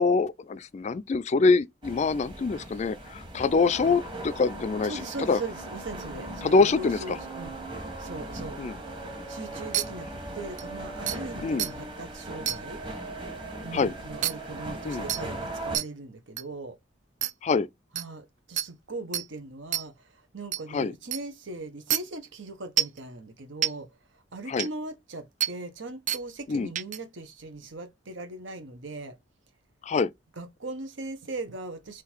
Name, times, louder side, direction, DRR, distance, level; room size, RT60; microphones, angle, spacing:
voice 1, 0.0-5.0 5.3-5.4 6.4-7.2 8.6-8.8 11.4-11.7 13.7-13.9 14.8-15.1 17.4-17.7 20.7-20.9 24.5-24.7 26.5-26.7 29.8-30.1, left 4 dB, 35° left, 0.3 m, -24 dB
sound 1, 1.8-15.8, right 2 dB, 25° right, 1.3 m, -39 dB
voice 2, 4.8-7.5 8.0-8.6 9.3-12.8 13.6-16.8 17.9-23.9 24.1-29.2 30.4-32.0, right 2 dB, 85° right, 1.2 m, -39 dB
sound 2, 9.7-9.8 10.6-10.7 11.1-11.2 11.6-11.7 12.5-12.6 14.2-14.3 15.1-15.2 15.7-15.8 16.4-16.5 17.2-17.3 18.0-18.1 18.6-18.7 19.1-19.2 19.7-19.8 20.5-20.6 21.1-21.2 21.9-22.0 22.8-23.0 23.6-23.7 24.6-24.7 25.4-25.5 26.1-26.2 26.8-27.0, right 11 dB, 40° right, 0.4 m, -27 dB
3.8 x 3.0 x 4.5 m
head